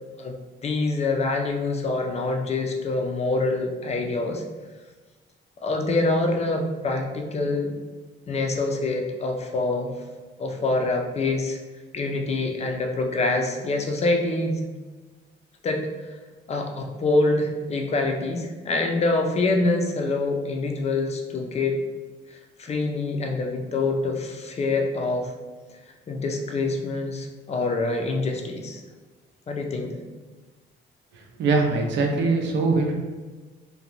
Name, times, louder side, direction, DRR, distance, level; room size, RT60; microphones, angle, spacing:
voice 1, 0.6-4.4 5.6-7.7 8.3-9.9 10.4-11.6 11.9-14.6 15.6-15.8 16.5-21.8 22.6-25.3 26.1-28.8 29.5-30.0, left 2 dB, 35° left, 3 dB, 0.4 m, -25 dB
voice 2, 31.1-32.9, right 3 dB, 65° right, 2 dB, 0.5 m, -22 dB
2.5 x 2.2 x 2.9 m, 1.3 s
cardioid pair, 90°, 20 cm